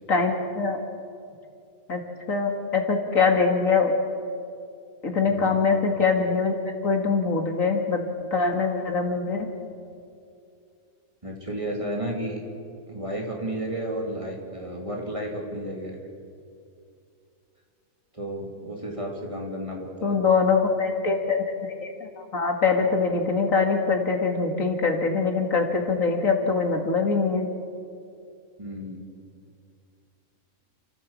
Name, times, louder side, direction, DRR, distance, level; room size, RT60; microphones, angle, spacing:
voice 1, 0.1-0.8 1.9-2.0 2.3-3.9 5.0-9.5 20.0-27.5, left 4 dB, 70° left, 3 dB, 2.4 m, -23 dB
voice 2, 11.2-12.4 12.9-16.0 18.1-20.2 28.6-29.0, right 1 dB, 20° right, 0 dB, 3.2 m, -32 dB
29.5 x 14.0 x 7.4 m, 2.4 s
omnidirectional pair, 1.5 m